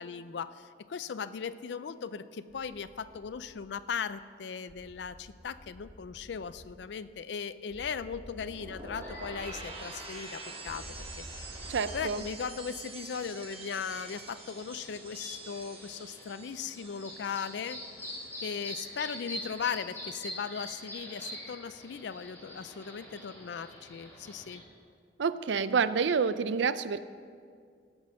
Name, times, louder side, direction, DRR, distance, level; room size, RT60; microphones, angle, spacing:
voice 1, 0.0-11.0 11.9-17.8 18.4-24.6, left 6 dB, 75° left, 13 dB, 0.4 m, -38 dB
sound 1, 2.5-3.7 4.7-6.7 7.7-9.7 10.7-12.0, equal, 40° left, 1.8 m, -50 dB
sound 2, 8.4-18.5 18.8-19.2, right 3 dB, 30° right, 1.1 m, -47 dB
sound 3, 9.0-24.6, left 1 dB, 15° left, 3.1 m, -46 dB
voice 2, 11.7-12.2 25.2-27.0, right 5 dB, 90° right, 14 dB, 0.5 m, -28 dB
17.0 x 6.2 x 6.4 m, 2.1 s
head